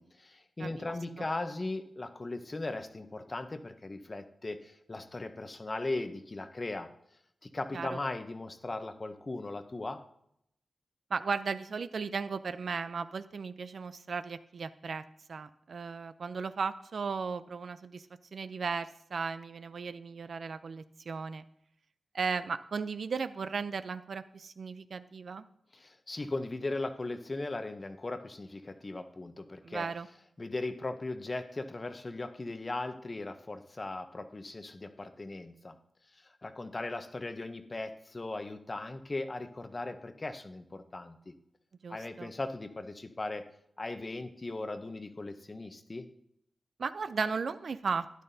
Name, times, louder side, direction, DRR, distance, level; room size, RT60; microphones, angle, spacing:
voice 1, 0.0-6.9 7.4-10.0 25.7-29.9 30.4-35.8 36.1-41.3 41.9-43.5 43.8-46.1, left 2 dB, 30° left, 9 dB, 0.7 m, -38 dB
voice 2, 0.6-0.9 1.2-1.3 7.7-8.0 11.1-15.0 15.3-18.1 18.3-21.4 22.1-25.5 29.6-30.1 41.8-42.3 46.8-48.2, right 5 dB, 65° right, 13 dB, 0.4 m, -36 dB
12.5 x 10.5 x 2.7 m, 0.75 s
wide cardioid pair, 110°, 0 cm